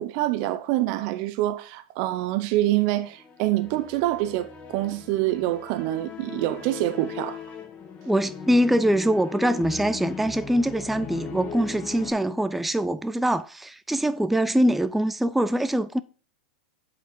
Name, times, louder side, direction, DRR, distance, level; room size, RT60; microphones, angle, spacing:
voice 1, 0.0-7.4, right 15 dB, 50° right, 0.6 m, -26 dB
sound 1, 3.0-12.1, left 5 dB, 25° left, 1.7 m, -39 dB
voice 2, 8.1-16.0, right 1 dB, 5° right, 0.3 m, -23 dB
8.1 x 4.3 x 4.4 m
hypercardioid pair, 100°, 5 cm